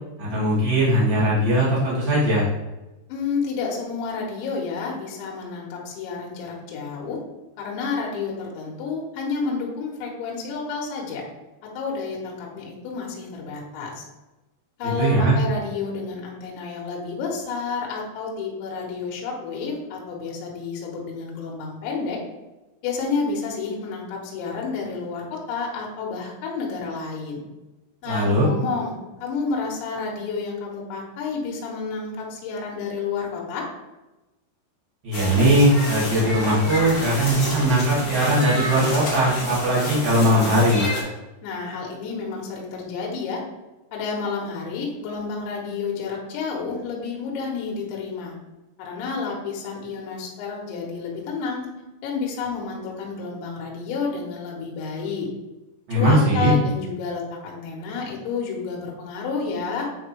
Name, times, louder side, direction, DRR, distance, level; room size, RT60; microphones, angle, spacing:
voice 1, 0.2-2.5 15.0-15.4 28.0-28.5 35.0-40.9 55.9-56.5, right 1 dB, 40° right, -8 dB, 2.0 m, -19 dB
voice 2, 3.1-7.2 7.6-11.2 11.7-14.0 14.8-22.2 22.8-27.4 28.0-33.7 41.4-43.4 43.9-48.3 48.8-51.7 52.0-55.3 55.9-59.9, left 4 dB, 75° left, -2 dB, 3.3 m, -30 dB
sound 1, 35.1-41.0, left 1 dB, 40° left, 1.8 m, -29 dB
9.0 x 3.6 x 3.2 m, 1.1 s
omnidirectional pair, 5.6 m